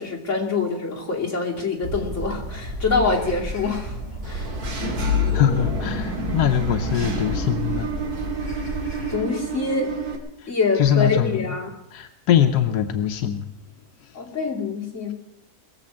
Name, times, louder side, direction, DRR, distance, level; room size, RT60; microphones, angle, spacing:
voice 1, 0.0-4.0 4.2-4.5 9.1-9.9 10.5-11.7 14.1-15.1, left 4 dB, 50° left, -2 dB, 3.2 m, -25 dB
sound 1, 1.8-9.2, right 1 dB, 20° right, 5.8 m, -32 dB
Engine / Mechanisms, 4.2-10.2, left 1 dB, 70° right, 2.4 m, -27 dB
voice 2, 5.0-7.9 10.4-11.6 11.9-13.5 14.0-14.2, left 10 dB, 85° left, 7 dB, 1.4 m, -23 dB
21.5 x 7.4 x 8.8 m, 0.83 s
omnidirectional pair, 1.7 m